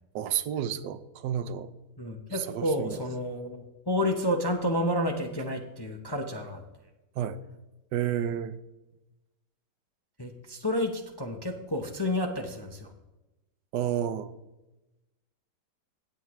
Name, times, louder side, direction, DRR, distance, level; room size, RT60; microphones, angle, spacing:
voice 1, 0.1-1.7 2.3-3.0 7.2-7.4 7.9-8.6 13.7-14.3, right 10 dB, 85° right, 12 dB, 1.3 m, -31 dB
voice 2, 2.0-6.6 10.2-12.9, left 1 dB, 30° left, 3 dB, 0.4 m, -30 dB
17.0 x 8.4 x 3.1 m, 1.0 s
omnidirectional pair, 1.9 m